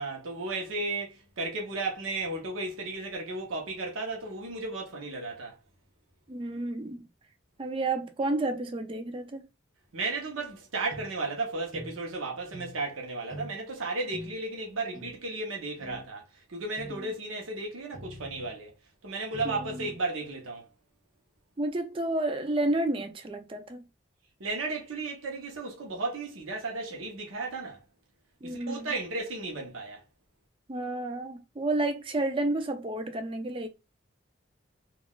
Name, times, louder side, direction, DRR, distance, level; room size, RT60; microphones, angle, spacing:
voice 1, 0.0-5.6 9.9-16.2 16.5-18.7 19.0-20.7 24.4-27.8 28.4-30.0, right 3 dB, 85° right, 0.8 m, -34 dB
voice 2, 6.3-7.0 7.6-9.4 16.9-17.1 19.4-19.9 21.6-23.9 28.4-28.9 30.7-33.7, right 2 dB, 25° right, 0.4 m, -31 dB
sound 1, 10.9-11.1 11.7-12.0 12.5-12.8 13.3-13.6 14.1-14.4 14.9-15.2 15.8-16.1 16.8-17.1 17.9-18.6 19.3-20.0, right 2 dB, ahead, 1.1 m, -43 dB
3.6 x 2.3 x 2.3 m
head